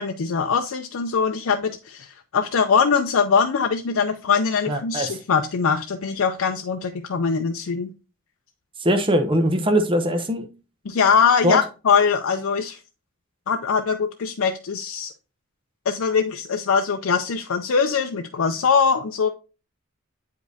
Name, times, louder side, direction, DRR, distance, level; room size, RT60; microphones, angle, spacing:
voice 1, 0.0-7.9 10.9-12.8 13.5-15.1 15.9-19.3, left 6 dB, 85° left, 0.5 m, -22 dB
voice 2, 4.7-5.2 8.8-10.5 11.4-11.6, equal, 25° right, 0.8 m, -21 dB
8.0 x 5.1 x 2.7 m
head